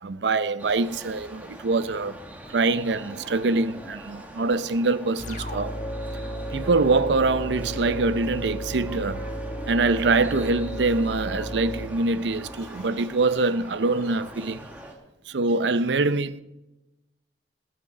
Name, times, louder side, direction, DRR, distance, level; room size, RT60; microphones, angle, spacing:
voice 1, 0.0-2.2 2.5-5.7 6.5-9.2 9.7-14.7 15.3-16.4, right 3 dB, 85° right, 0.6 m, -24 dB
sound 1, 0.6-14.9, right 1 dB, 10° right, 1.6 m, -43 dB
sound 2, 5.2-12.7, right 1 dB, 45° left, 1.7 m, -34 dB
20.5 x 9.5 x 4.0 m
head